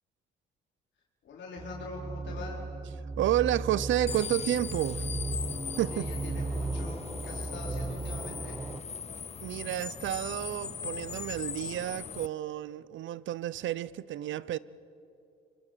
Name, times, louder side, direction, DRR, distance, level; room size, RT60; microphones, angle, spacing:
voice 1, 1.2-2.6 5.9-8.6, left 3 dB, 65° left, 4.7 m, -43 dB
sound 1, 1.6-8.8, right 3 dB, 15° right, 0.8 m, -36 dB
voice 2, 3.2-5.1 5.8-6.1 9.4-14.6, right 12 dB, 75° right, 0.7 m, -30 dB
sound 2, 4.1-12.3, left 6 dB, 35° left, 0.6 m, -39 dB
26.0 x 24.5 x 7.6 m
cardioid pair, 90°, 20 cm